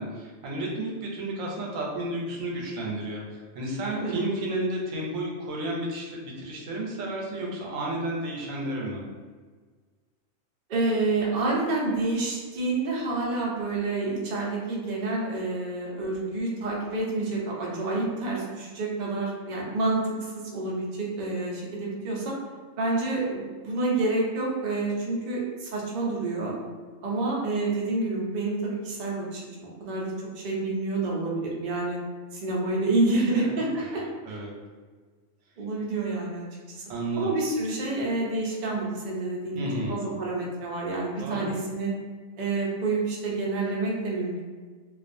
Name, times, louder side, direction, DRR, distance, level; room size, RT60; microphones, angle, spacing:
voice 1, 0.0-9.0 33.4-33.9 34.2-34.5 36.9-37.3 39.5-40.0 41.2-41.5, right 1 dB, 90° right, -2 dB, 1.0 m, -32 dB
voice 2, 10.7-22.3 22.8-26.5 27.0-32.0 32.3-34.0 35.6-36.8 37.2-41.9 42.4-44.4, right 2 dB, 55° right, -3 dB, 0.5 m, -28 dB
2.4 x 2.3 x 2.5 m, 1.5 s
omnidirectional pair, 1.3 m